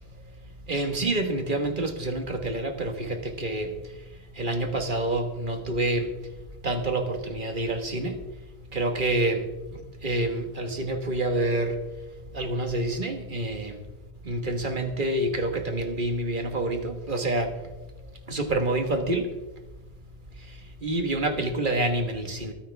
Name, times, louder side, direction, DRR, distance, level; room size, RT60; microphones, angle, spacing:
voice 1, 0.7-3.7 4.4-6.1 6.6-8.2 8.7-9.5 9.7-11.8 12.3-13.8 14.2-17.5 18.3-19.3 20.8-22.5, right 2 dB, 50° right, 5 dB, 1.7 m, -27 dB
23.0 x 9.8 x 3.5 m, 1.1 s
omnidirectional pair, 1.1 m